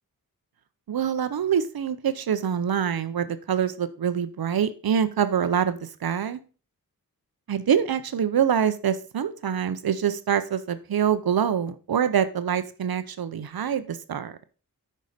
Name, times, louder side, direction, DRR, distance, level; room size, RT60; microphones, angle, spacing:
voice 1, 0.9-6.4 7.5-14.3, right 8 dB, 80° right, 12 dB, 0.7 m, -25 dB
9.2 x 5.4 x 5.0 m, 0.36 s
wide cardioid pair, 100°, 36 cm